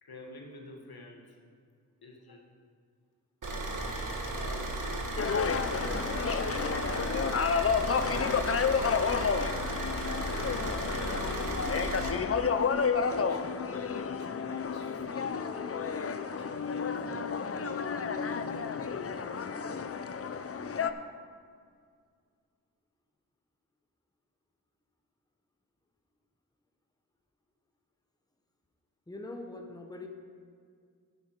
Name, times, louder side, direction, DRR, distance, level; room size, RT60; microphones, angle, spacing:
voice 1, 0.0-1.4 2.0-2.4 4.2-4.8 5.2-6.1 6.4-9.5 11.0-15.7 16.3-17.6 18.6-20.0, left 2 dB, 80° left, 0 dB, 1.6 m, -49 dB
Car / Idling, 3.4-12.1, right 2 dB, 55° right, 1.7 m, -35 dB
sound 1, 5.2-20.9, left 6 dB, 40° left, 0.5 m, -31 dB
voice 2, 29.1-30.1, left 2 dB, 10° left, 3 dB, 1.0 m, -42 dB
10.5 x 9.0 x 4.6 m, 2.1 s
wide cardioid pair, 75°, 36 cm